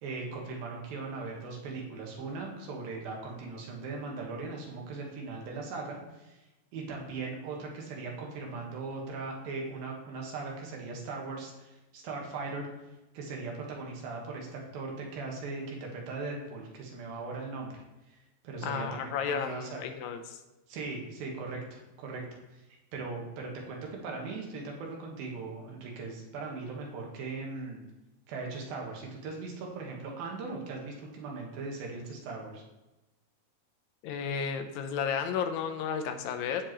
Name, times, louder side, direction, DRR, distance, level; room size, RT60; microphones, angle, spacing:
voice 1, 0.0-6.4 6.7-12.7 13.1-17.8 18.1-19.8 20.7-22.2 22.9-27.8 28.3-32.6, right 3 dB, 80° right, 0 dB, 3.3 m, -39 dB
voice 2, 18.6-20.4 34.0-36.7, left 7 dB, 80° left, 7 dB, 2.5 m, -33 dB
15.0 x 5.1 x 3.1 m, 1.0 s
omnidirectional pair, 4.1 m